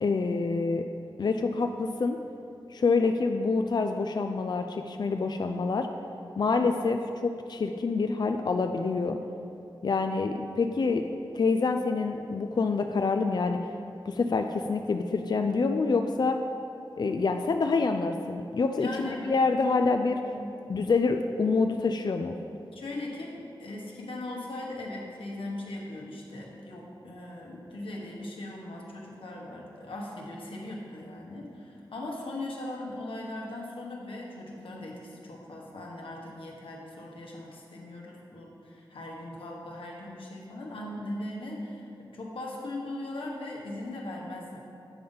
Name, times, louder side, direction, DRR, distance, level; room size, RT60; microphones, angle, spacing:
voice 1, 0.0-0.9 1.2-2.2 2.7-5.9 6.4-9.2 9.8-13.6 14.1-16.4 17.0-20.2 20.7-22.4, left 4 dB, 55° left, 6 dB, 0.3 m, -27 dB
voice 2, 18.8-19.3 20.3-20.5 22.7-44.6, left 1 dB, 90° left, -2 dB, 1.1 m, -39 dB
8.5 x 3.8 x 5.4 m, 2.6 s
wide cardioid pair, 60°, 9 cm